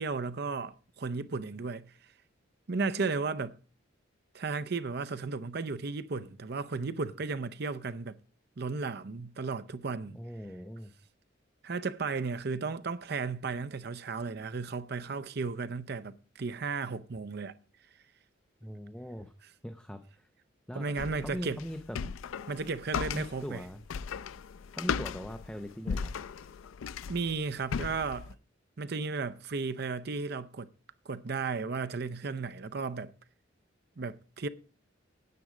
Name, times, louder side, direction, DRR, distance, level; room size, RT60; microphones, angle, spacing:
voice 1, 0.0-1.9 2.7-3.6 4.3-8.2 8.6-10.2 11.6-17.6 20.7-21.6 22.5-23.6 27.1-28.3 28.8-30.7 31.1-33.1 34.0-34.5, right 4 dB, 55° right, 0.6 m, -34 dB
voice 2, 10.1-10.9 18.6-19.3 19.6-20.3 20.7-20.9 21.2-22.0 23.1-23.8 24.7-26.1, equal, 5° left, 0.6 m, -40 dB
sound 1, 21.0-28.3, left 6 dB, 85° left, 0.4 m, -37 dB
9.4 x 8.5 x 5.0 m
head